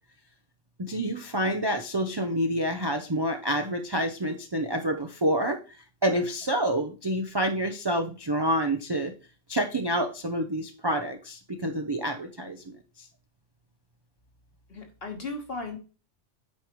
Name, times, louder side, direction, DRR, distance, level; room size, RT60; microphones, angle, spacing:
voice 1, 0.8-5.6 6.0-9.1 9.5-12.6, right 1 dB, 30° right, 3 dB, 0.4 m, -28 dB
voice 2, 14.7-15.8, left 3 dB, 50° left, 3 dB, 1.5 m, -36 dB
8.6 x 4.7 x 3.0 m, 0.34 s
omnidirectional pair, 1.3 m